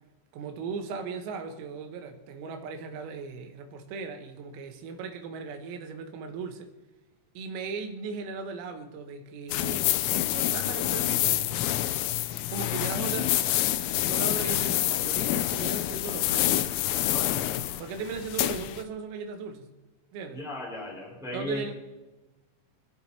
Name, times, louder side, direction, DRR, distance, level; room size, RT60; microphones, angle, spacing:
voice 1, 0.3-6.7 7.4-11.7 12.5-16.7 17.2-17.3 17.8-19.7 20.1-20.4 21.3-21.7, right 5 dB, 85° right, 4.2 m, -38 dB
sound 1, 9.5-18.8, left 14 dB, 85° left, 3.4 m, -27 dB
voice 2, 17.1-17.5 20.3-21.7, left 1 dB, ahead, 4.7 m, -36 dB
26.5 x 10.5 x 4.4 m
omnidirectional pair, 5.9 m